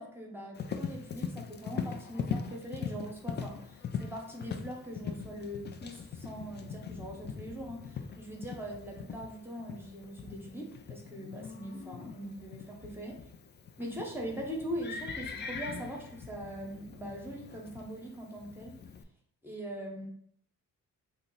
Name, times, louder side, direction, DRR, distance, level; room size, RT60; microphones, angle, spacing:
voice 1, 0.0-13.2 13.8-18.8 19.4-20.1, equal, 5° right, -1 dB, 0.9 m, -41 dB
Livestock farm animals working animals, 0.6-19.0, left 6 dB, 30° left, 0.4 m, -41 dB
2.8 x 2.1 x 3.8 m, 0.64 s
supercardioid pair, 65°, 36 cm